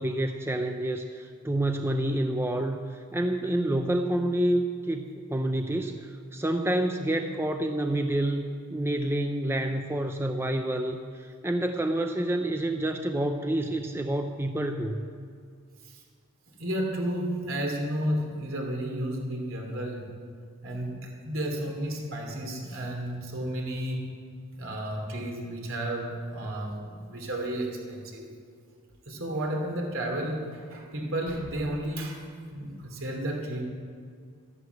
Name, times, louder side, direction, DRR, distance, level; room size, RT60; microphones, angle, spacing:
voice 1, 0.0-8.4 8.7-15.0, right 1 dB, 10° right, 5 dB, 0.5 m, -28 dB
voice 2, 16.6-20.1 20.6-24.0 24.5-28.3 29.0-32.2 32.5-33.6, right 1 dB, 70° right, 1 dB, 2.9 m, -32 dB
13.0 x 11.0 x 8.1 m, 2.2 s
head